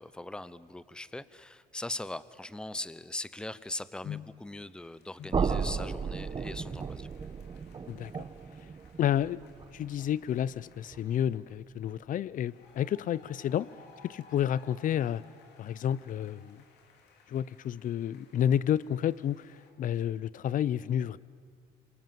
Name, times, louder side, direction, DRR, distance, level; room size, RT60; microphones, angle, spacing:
voice 1, 0.0-7.1, left 1 dB, 5° left, 16 dB, 0.7 m, -40 dB
sound 1, 4.3-11.6 12.3-19.7, left 4 dB, 80° left, 3.1 m, -60 dB
sound 2, 5.3-11.2, right 5 dB, 30° right, 1.1 m, -35 dB
voice 2, 7.9-8.3 9.0-9.4 9.7-13.7 14.0-15.2 15.6-16.6 17.3-21.2, left 10 dB, 50° left, 20 dB, 0.6 m, -30 dB
27.5 x 25.0 x 7.6 m, 2.1 s
cardioid pair, 110°, 17 cm